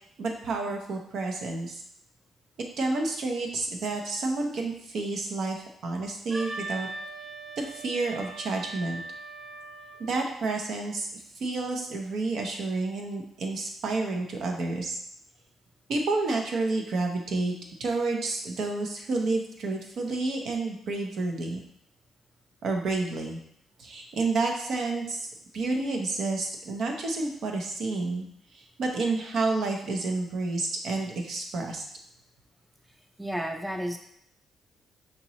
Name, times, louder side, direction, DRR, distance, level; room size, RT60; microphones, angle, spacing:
voice 1, 0.2-1.8 2.8-6.9 7.8-9.0 10.0-15.0 15.9-17.5 17.8-21.6 22.6-23.4 23.8-25.3 25.5-28.3 28.5-31.8, right 3 dB, 70° right, 2 dB, 0.8 m, -30 dB
Wind instrument woodwind instrument, 6.3-10.1, right 2 dB, 35° right, 1.0 m, -40 dB
voice 2, 33.2-34.0, equal, 5° right, 3 dB, 0.5 m, -31 dB
5.0 x 2.9 x 3.0 m, 0.71 s
cardioid pair, 75°, 0 cm